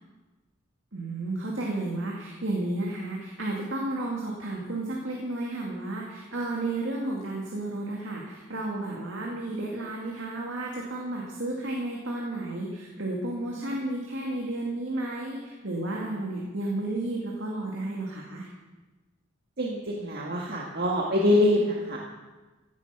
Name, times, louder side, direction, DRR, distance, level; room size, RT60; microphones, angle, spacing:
voice 1, 0.9-18.5, right 2 dB, 70° right, -2 dB, 2.4 m, -32 dB
voice 2, 19.6-22.0, left 1 dB, 55° right, -2 dB, 1.7 m, -24 dB
16.0 x 11.0 x 5.8 m, 1.2 s
head